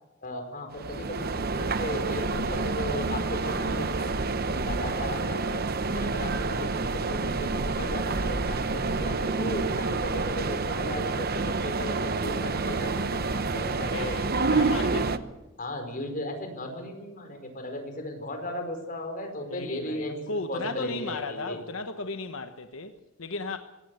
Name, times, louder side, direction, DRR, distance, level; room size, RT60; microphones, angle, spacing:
voice 1, 0.2-14.2 15.6-20.1 20.5-21.6, left 1 dB, 45° left, 4.7 m, -36 dB
sound 1, 0.7-15.2, right 3 dB, 50° right, 1.0 m, -28 dB
voice 2, 13.7-15.3 19.5-23.6, left 3 dB, 90° left, 1.2 m, -35 dB
22.0 x 17.5 x 8.2 m
head